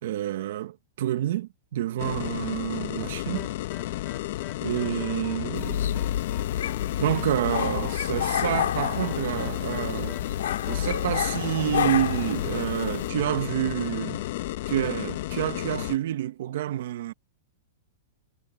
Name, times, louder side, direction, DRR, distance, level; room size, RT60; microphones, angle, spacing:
voice 1, 0.0-3.5 4.6-6.0 7.0-14.2 14.7-17.1, right 13 dB, 65° right, 1.5 m, -29 dB
sound 1, 2.0-16.0, left 15 dB, 55° left, 1.0 m, -32 dB
sound 2, 3.3-10.8, left 12 dB, 25° left, 4.1 m, -46 dB
sound 3, 5.5-13.1, left 10 dB, 85° left, 3.1 m, -30 dB
supercardioid pair, 155°, 0 cm